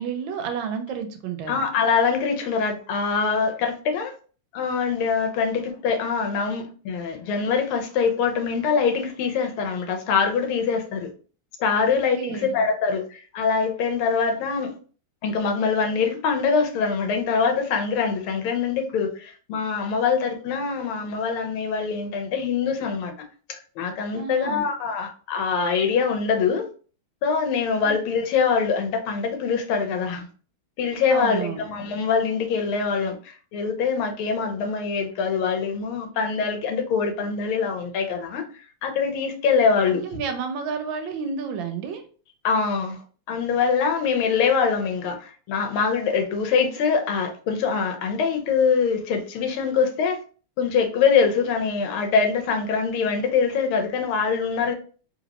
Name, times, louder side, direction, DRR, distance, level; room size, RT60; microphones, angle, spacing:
voice 1, 0.0-1.6 11.8-12.6 24.1-24.7 27.8-28.0 31.1-31.6 39.9-42.0, right 6 dB, 75° right, 1.3 m, -31 dB
voice 2, 1.5-4.1 4.5-11.1 11.6-14.7 15.2-23.1 23.5-26.6 27.2-30.3 30.8-38.4 38.8-40.0 42.4-43.0 43.3-50.2 50.6-54.7, left 5 dB, 85° left, 1.6 m, -24 dB
4.0 x 2.8 x 2.8 m
omnidirectional pair, 2.3 m